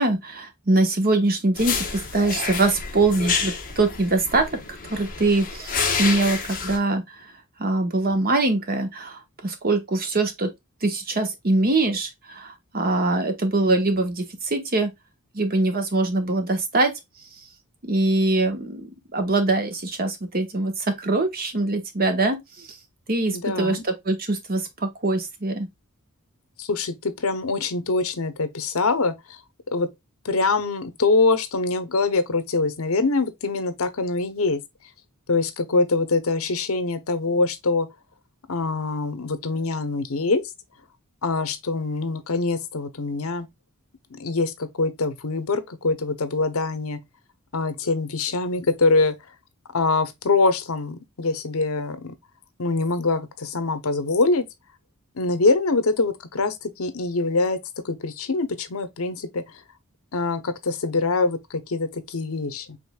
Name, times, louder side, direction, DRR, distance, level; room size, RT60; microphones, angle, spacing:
voice 1, 0.0-4.6 4.8-7.3 7.6-10.5 10.8-14.9 15.3-17.0 17.8-22.8 23.1-25.7, right 2 dB, 45° right, 1.2 m, -23 dB
sound 1, 1.6-6.8, left 5 dB, 40° left, 1.2 m, -29 dB
voice 2, 23.3-23.8 26.6-29.1 29.7-29.9 30.2-34.6 35.3-37.9 38.5-40.4 41.2-43.5 44.2-47.0 47.5-49.1 49.7-52.1 52.6-54.4 55.2-57.6 57.8-59.4 60.1-62.8, left 3 dB, 70° left, 0.8 m, -24 dB
5.1 x 3.5 x 2.3 m
head